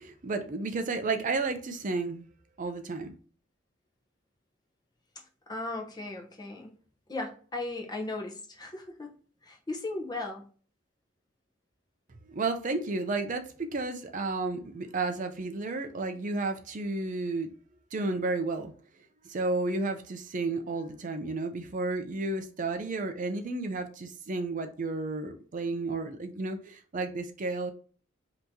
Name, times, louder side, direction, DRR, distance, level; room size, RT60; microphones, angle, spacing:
voice 1, 0.0-2.2 2.6-3.1 12.3-17.5 17.9-18.7 19.2-27.7, right 3 dB, 40° right, 0.5 m, -32 dB
voice 2, 5.5-6.7 7.1-9.1 9.4-10.4, left 2 dB, 20° left, 0.9 m, -37 dB
5.6 x 2.9 x 2.8 m
head